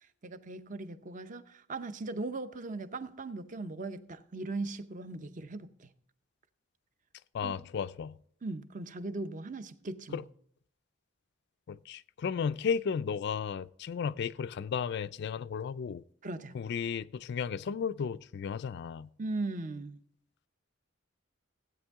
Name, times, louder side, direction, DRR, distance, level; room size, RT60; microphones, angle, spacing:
voice 1, 0.0-5.9 7.4-7.6 8.4-10.3 16.2-16.6 19.2-20.0, right 2 dB, 40° right, 0.7 m, -39 dB
voice 2, 7.3-8.1 10.1-10.2 11.7-16.0 16.5-19.1, left 6 dB, 55° left, 0.3 m, -34 dB
15.5 x 9.0 x 3.5 m
head